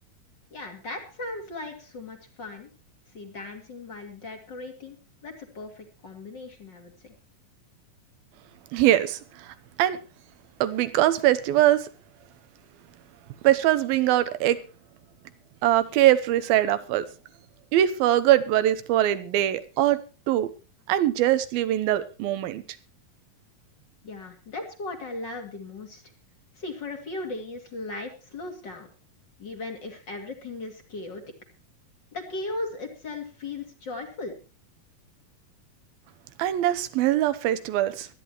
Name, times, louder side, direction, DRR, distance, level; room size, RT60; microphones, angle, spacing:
voice 1, 0.5-2.7 3.1-5.0 5.2-7.1 24.0-26.0 26.6-28.9 29.4-31.2 32.1-34.3, left 2 dB, 35° left, 2.7 m, -37 dB
voice 2, 8.7-10.0 10.6-11.9 13.4-14.6 15.6-17.0 17.7-20.0 20.3-20.5 20.9-22.6 36.4-38.1, right 13 dB, 85° right, 2.9 m, -22 dB
23.5 x 10.5 x 3.0 m
omnidirectional pair, 4.1 m